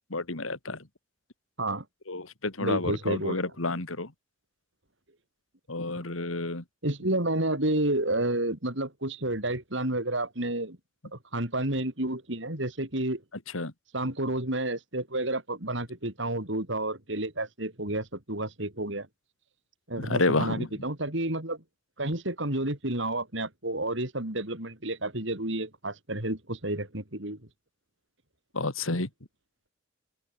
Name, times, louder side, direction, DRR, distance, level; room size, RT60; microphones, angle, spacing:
voice 1, 0.1-0.8 2.1-4.1 5.7-6.6 13.5-13.7 20.0-20.7 28.5-29.1, left 2 dB, 85° left, 2.7 m, -30 dB
voice 2, 2.6-3.4 6.8-10.8 11.1-13.2 13.9-19.1 19.9-21.6 22.0-27.4, right 1 dB, 65° right, 4.4 m, -30 dB
open air
head